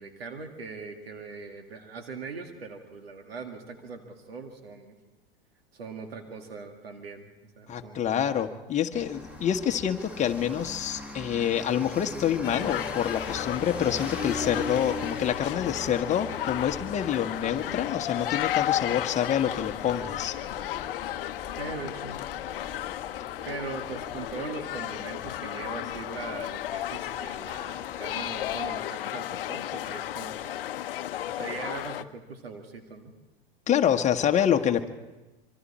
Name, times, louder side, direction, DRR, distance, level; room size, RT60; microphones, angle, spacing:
voice 1, 0.0-4.9 5.7-7.3 7.6-8.2 21.6-22.2 23.4-30.6 31.3-33.1, right 4 dB, 80° right, 4 dB, 2.3 m, -40 dB
voice 2, 7.7-20.4 33.7-34.9, left 9 dB, 25° left, 4 dB, 1.3 m, -27 dB
sound 1, 8.9-28.7, left 2 dB, 5° right, 2.2 m, -42 dB
sound 2, 12.4-32.0, left 12 dB, 65° left, 0.8 m, -34 dB
25.5 x 24.5 x 4.3 m, 1.1 s
hypercardioid pair, 95°, 30 cm